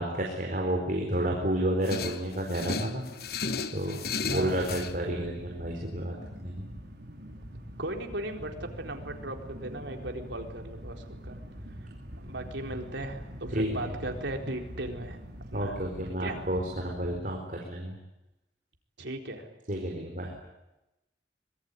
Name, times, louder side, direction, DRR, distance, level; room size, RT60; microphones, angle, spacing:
voice 1, 0.0-3.0 3.3-6.7 13.5-13.8 15.5-17.9 19.7-20.3, right 1 dB, 45° right, 1 dB, 4.6 m, -31 dB
sound 1, 1.8-4.9, left 5 dB, 55° left, 1.2 m, -34 dB
sound 2, 4.3-17.2, equal, 60° right, 5.1 m, -44 dB
voice 2, 7.8-11.4 12.2-15.2 15.5-15.7 16.2-16.4 19.0-19.5, right 1 dB, 85° right, 3 dB, 4.1 m, -37 dB
25.0 x 22.5 x 9.7 m, 0.95 s
head